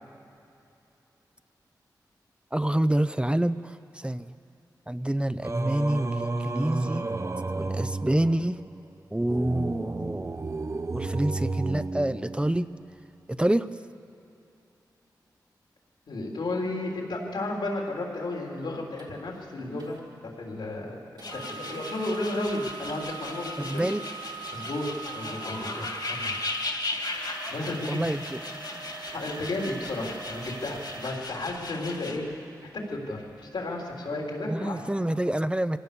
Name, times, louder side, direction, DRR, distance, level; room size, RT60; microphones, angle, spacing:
voice 1, 2.5-4.3 4.9-7.1 7.6-8.6 9.1-10.4 10.9-12.7 13.3-13.7 23.6-24.0 27.9-28.4 34.5-35.8, right 1 dB, 15° right, 12 dB, 0.7 m, -27 dB
Singing, 5.4-12.8, right 3 dB, 40° right, 0.9 m, -32 dB
voice 2, 16.1-20.0 20.2-23.9 24.5-26.4 27.5-28.0 29.1-32.2 32.7-34.8, left 2 dB, 80° left, -1 dB, 3.6 m, -33 dB
sound 1, 19.0-19.1 19.8-20.0 21.2-32.0 32.6-32.7 33.3-33.4, right 6 dB, 75° right, 3.3 m, -42 dB
sound 2, 21.2-32.2, left 3 dB, 60° left, 2.6 m, -37 dB
24.5 x 16.5 x 6.9 m, 2.8 s
cardioid pair, 40°, 8 cm